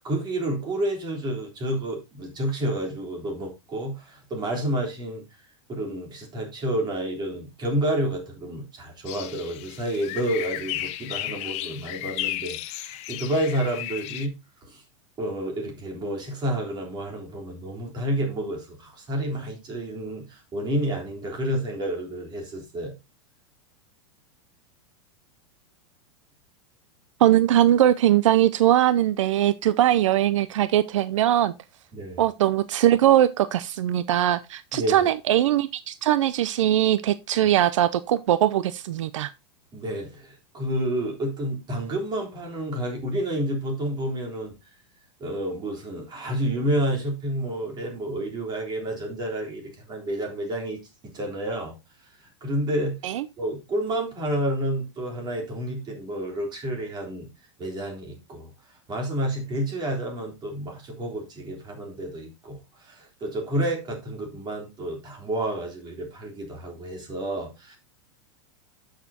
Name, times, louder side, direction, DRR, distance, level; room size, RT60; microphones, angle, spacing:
voice 1, 0.0-5.3 5.7-14.3 14.7-14.8 15.2-22.9 31.9-32.2 34.7-35.1 39.7-44.5 45.2-49.6 49.9-51.8 52.4-53.0 53.4-57.3 57.6-58.5 58.9-67.8, right 1 dB, 25° right, 3.7 m, -29 dB
sound 1, 9.1-14.3, left 14 dB, 45° left, 0.9 m, -34 dB
voice 2, 27.2-31.5 32.2-39.3 53.0-53.3, right 12 dB, 80° right, 0.5 m, -21 dB
12.0 x 6.6 x 2.8 m
hypercardioid pair, 125°, 16 cm